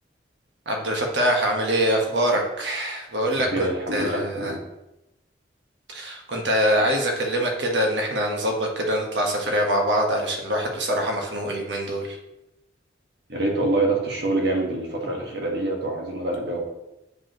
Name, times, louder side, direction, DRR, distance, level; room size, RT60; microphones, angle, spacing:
voice 1, 0.6-4.5 5.9-12.2, equal, 90° right, 1 dB, 1.3 m, -24 dB
voice 2, 3.3-4.6 13.3-16.7, right 2 dB, 65° right, 0 dB, 1.5 m, -26 dB
8.1 x 5.3 x 3.0 m, 0.92 s
head